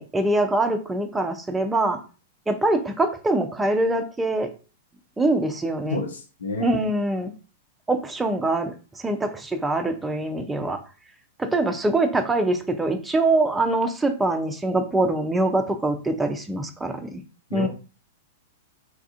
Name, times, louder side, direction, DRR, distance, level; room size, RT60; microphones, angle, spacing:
voice 1, 0.0-2.0 2.5-4.5 5.2-6.0 6.6-7.3 7.9-10.8 11.4-17.2 17.5-17.7, right 2 dB, 10° right, 6 dB, 0.4 m, -24 dB
voice 2, 5.9-6.9 17.5-17.7, left 3 dB, 70° left, 5 dB, 0.5 m, -29 dB
3.2 x 2.3 x 2.5 m, 0.36 s
figure-of-eight pair, 100°, 0 cm